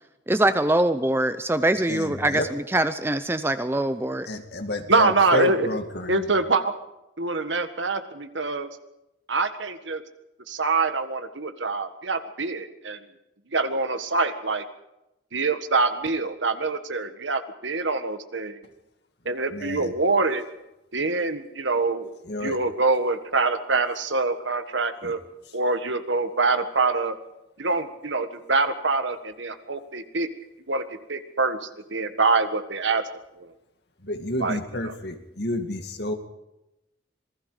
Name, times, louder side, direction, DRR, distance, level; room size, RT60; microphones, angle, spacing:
voice 1, 0.3-4.3, right 1 dB, 10° right, 11 dB, 0.6 m, -23 dB
voice 2, 1.9-2.5 4.3-6.2 19.5-19.9 22.3-22.6 25.0-25.1 34.0-36.1, left 1 dB, 60° left, 6 dB, 2.3 m, -30 dB
voice 3, 4.9-5.8 6.1-6.7 7.2-8.7 9.3-10.0 10.5-13.0 13.5-14.6 15.3-18.6 19.2-20.4 20.9-22.1 22.4-25.2 25.5-27.2 27.6-30.3 30.7-30.8 31.1-33.0 33.4-33.5 34.4-34.9, right 3 dB, 80° right, 9 dB, 1.7 m, -25 dB
26.5 x 20.0 x 5.0 m, 0.92 s
head